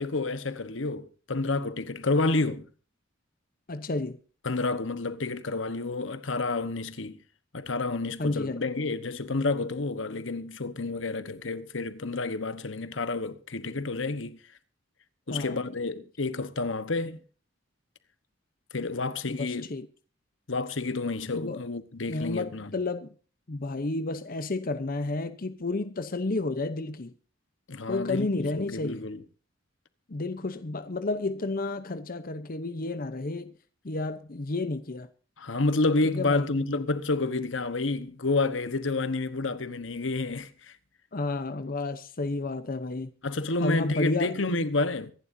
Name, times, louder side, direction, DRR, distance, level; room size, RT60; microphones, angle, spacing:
voice 1, 0.0-2.7 4.4-7.2 7.5-14.4 15.3-17.2 18.7-19.7 20.5-22.7 27.7-29.2 35.4-40.8 43.2-45.1, left 3 dB, 75° left, 1.2 m, -29 dB
voice 2, 3.7-4.2 8.2-8.6 15.3-15.6 19.3-19.9 21.3-21.6 22.1-23.1 23.5-27.1 27.9-29.0 30.1-33.5 33.8-35.1 36.0-36.5 41.1-43.1 43.6-44.3, left 2 dB, 45° left, 0.8 m, -31 dB
24.5 x 11.0 x 2.7 m
head